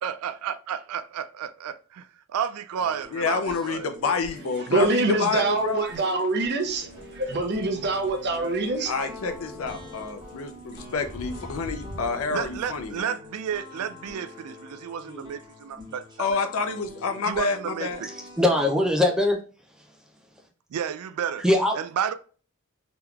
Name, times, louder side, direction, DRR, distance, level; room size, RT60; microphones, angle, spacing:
voice 1, 0.0-3.9 12.3-16.1 17.3-18.1 20.7-21.4 21.8-22.1, right 8 dB, 85° right, 0.3 m, -32 dB
sound 1, 2.8-18.9, left 1 dB, 20° right, 1.1 m, -45 dB
voice 2, 3.1-5.9 8.9-13.2 16.2-18.0, left 4 dB, 70° left, 0.5 m, -28 dB
voice 3, 4.7-6.9 7.1-9.1, right 2 dB, 50° right, 0.6 m, -25 dB
Crow, 6.6-13.0, equal, 40° left, 1.3 m, -44 dB
voice 4, 18.0-19.4 19.7-20.0 21.4-21.8, left 1 dB, 5° right, 0.5 m, -22 dB
3.6 x 3.0 x 2.3 m
head